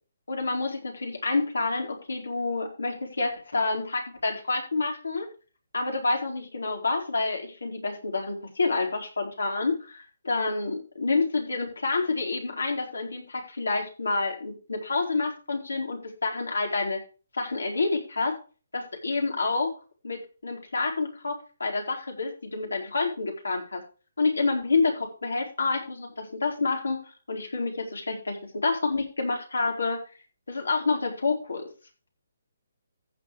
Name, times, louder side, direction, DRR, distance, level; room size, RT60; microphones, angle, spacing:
voice 1, 0.3-5.3 5.7-17.0 17.3-18.4 18.7-19.7 20.0-23.8 24.2-30.0 30.5-31.7, left 3 dB, 90° left, 3 dB, 4.5 m, -28 dB
15.0 x 7.8 x 3.3 m, 0.35 s
hypercardioid pair, 150°, 0 cm